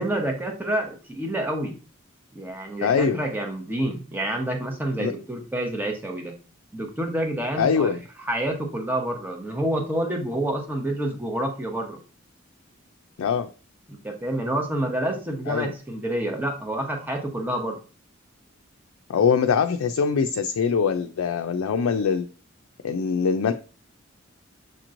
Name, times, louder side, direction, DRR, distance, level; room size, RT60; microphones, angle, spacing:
voice 1, 0.0-1.7 2.3-6.3 6.7-7.9 8.2-12.0 13.9-17.8, right 1 dB, 10° right, 2 dB, 0.9 m, -28 dB
voice 2, 2.8-3.2 5.0-5.1 7.6-8.0 13.2-13.5 15.5-15.7 19.1-22.3 22.8-23.5, left 6 dB, 90° left, 7 dB, 0.4 m, -23 dB
6.5 x 3.0 x 2.5 m, 0.36 s
head